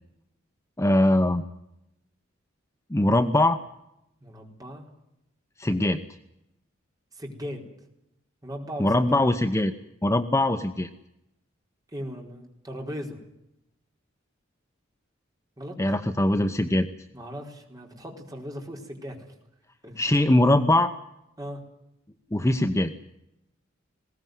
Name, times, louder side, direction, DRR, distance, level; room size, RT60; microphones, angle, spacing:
voice 1, 0.8-1.4 2.9-3.6 5.6-6.0 8.8-9.7 10.0-10.9 15.8-16.9 20.0-20.9 22.3-22.9, left 1 dB, 15° left, 8 dB, 0.9 m, -21 dB
voice 2, 4.2-4.9 7.1-7.6 8.4-9.1 11.9-13.2 15.6-15.8 17.1-19.3 19.8-20.0 21.4-21.6, equal, 20° right, 1 dB, 4.4 m, -38 dB
21.0 x 18.0 x 9.3 m, 0.84 s
head